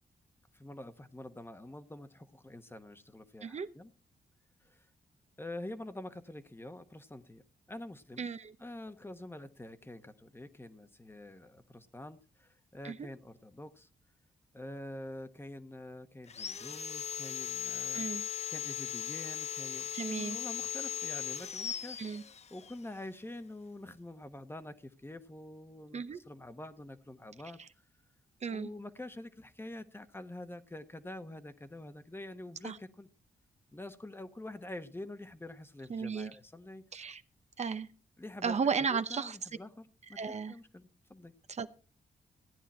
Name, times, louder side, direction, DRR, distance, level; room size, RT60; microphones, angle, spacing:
voice 1, 0.5-3.9 4.6-4.9 5.4-7.4 7.7-8.3 8.6-13.9 14.5-18.1 18.5-22.0 22.5-27.6 28.5-33.1 33.7-36.8 38.2-41.3, left 1 dB, 15° left, 10 dB, 1.1 m, -46 dB
voice 2, 8.2-8.5 12.8-13.1 17.9-18.2 19.9-20.4 22.0-22.2 25.9-26.2 28.4-28.7 32.6-32.8 35.9-36.3 36.9-37.2 37.6-37.9 38.4-39.4 40.2-40.5 41.5-41.7, right 5 dB, 45° right, 10 dB, 0.8 m, -34 dB
Sawing, 16.3-22.7, left 9 dB, 45° left, 0.6 m, -38 dB
15.5 x 9.9 x 4.3 m, 0.35 s
cardioid pair, 100°, 16 cm